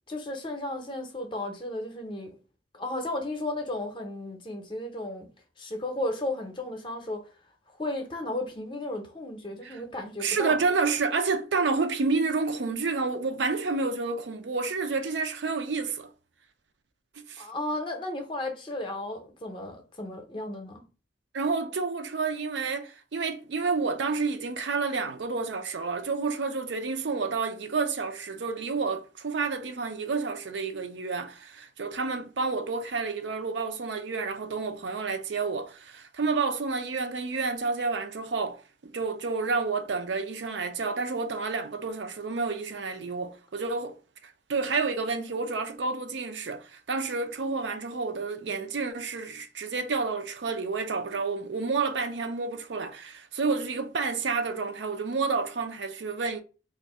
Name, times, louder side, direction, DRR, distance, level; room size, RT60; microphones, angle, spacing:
voice 1, 0.1-2.4 2.7-5.3 5.6-7.3 7.8-10.6 17.4-20.8, left 1 dB, 25° left, 0.6 m, -34 dB
voice 2, 10.2-16.1 17.2-17.4 21.3-44.0 44.2-56.4, right 4 dB, 70° right, 0.5 m, -30 dB
2.6 x 2.5 x 4.2 m
head